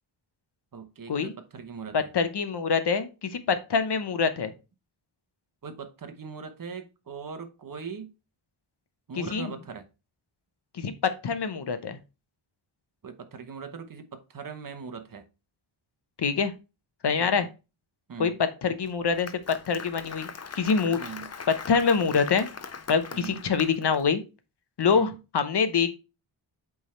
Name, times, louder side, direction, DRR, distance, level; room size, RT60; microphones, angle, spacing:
voice 1, 0.7-2.1 5.6-8.1 9.1-9.8 13.0-15.2 17.2-17.5 18.1-18.4 21.0-21.3 23.1-23.4 24.9-25.2, right 5 dB, 45° right, 1.0 m, -40 dB
voice 2, 1.9-4.5 9.3-9.5 10.7-12.0 16.2-16.5 17.0-17.5 18.2-18.3 18.6-19.3 19.7-20.3 20.5-21.0 21.7-22.5 22.9-24.2 24.8-26.0, left 5 dB, 55° left, 0.9 m, -25 dB
Applause, 18.9-24.0, left 5 dB, 35° left, 0.6 m, -40 dB
8.2 x 3.6 x 4.3 m
wide cardioid pair, 150°, 48 cm